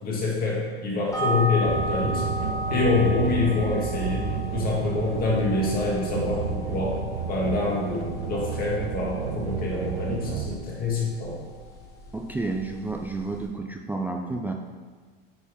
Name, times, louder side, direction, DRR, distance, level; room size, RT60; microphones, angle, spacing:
voice 1, 0.0-2.2 2.7-7.0 7.3-11.4, left 3 dB, 30° left, -4 dB, 2.2 m, -26 dB
sound 1, 1.1-13.5, left 1 dB, 10° left, 1.9 m, -35 dB
sound 2, 1.7-10.5, right 7 dB, 65° right, 0.7 m, -31 dB
voice 2, 12.1-14.5, right 3 dB, 5° right, 2 dB, 0.3 m, -30 dB
9.2 x 4.3 x 3.6 m, 1.5 s
supercardioid pair, 115°, 29 cm